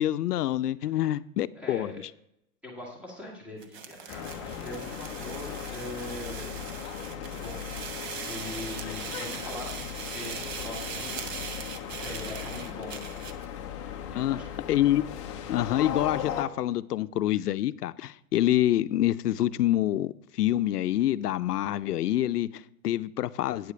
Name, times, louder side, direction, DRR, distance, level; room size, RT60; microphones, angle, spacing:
voice 1, 0.0-1.9 14.2-14.4 14.7-15.0 15.5-23.7, left 13 dB, 85° left, 0.6 m, -26 dB
voice 2, 1.6-2.0 2.6-6.6 7.2-11.3 12.0-13.0 14.1-14.5, left 1 dB, 5° right, 1.6 m, -42 dB
sound 1, 3.6-13.5, right 6 dB, 45° right, 1.0 m, -40 dB
sound 2, 4.1-16.4, left 9 dB, 20° left, 0.5 m, -38 dB
9.3 x 4.9 x 6.7 m
hypercardioid pair, 150°, 45 cm